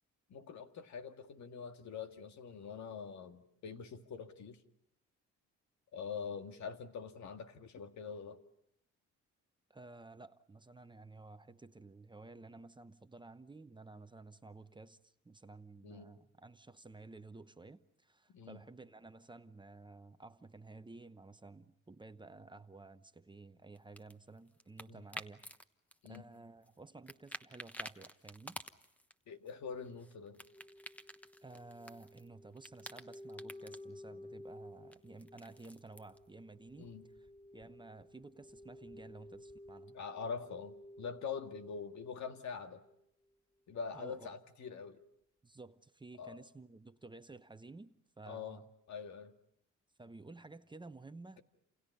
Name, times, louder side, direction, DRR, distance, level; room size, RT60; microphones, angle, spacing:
voice 1, 0.3-4.6 5.9-8.4 15.8-16.1 18.3-18.6 24.9-25.0 26.0-26.2 29.3-30.4 36.8-37.0 39.9-42.8 43.7-45.0 46.2-46.4 48.3-48.6 48.9-49.3, left 6 dB, 70° left, 2.0 m, -44 dB
voice 2, 9.7-25.4 26.0-28.6 31.4-37.3 37.5-40.0 43.9-44.3 45.4-48.6 50.0-51.4, right 3 dB, 15° right, 0.9 m, -53 dB
sound 1, 23.7-25.6 25.9-26.8 27.1-29.1 29.5-32.3 32.5-33.8 34.9-36.2, equal, 5° left, 1.2 m, -50 dB
sound 2, 30.5-42.5 42.8-42.9, left 1 dB, 20° left, 6.8 m, -54 dB
29.0 x 28.0 x 5.5 m
cardioid pair, 90°, 30 cm